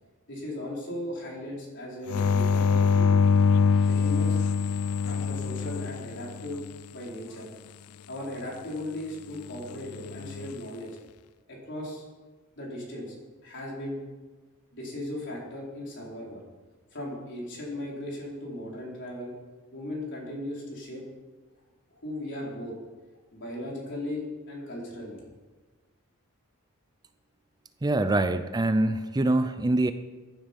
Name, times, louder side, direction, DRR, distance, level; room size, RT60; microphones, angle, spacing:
voice 1, 0.3-3.1 3.9-4.4 5.1-6.6 6.9-7.5 8.1-10.9 11.5-12.0 12.6-13.1 13.4-14.0 14.7-16.4 16.9-19.3 19.7-21.0 21.9-22.7 23.3-25.2, left 1 dB, 55° left, -3 dB, 4.3 m, -37 dB
sound 1, 2.1-6.7 10.0-10.5, left 5 dB, 90° left, 0.4 m, -24 dB
voice 2, 27.8-29.9, right 2 dB, 20° right, 10 dB, 0.4 m, -24 dB
15.0 x 10.5 x 5.3 m, 1.3 s
head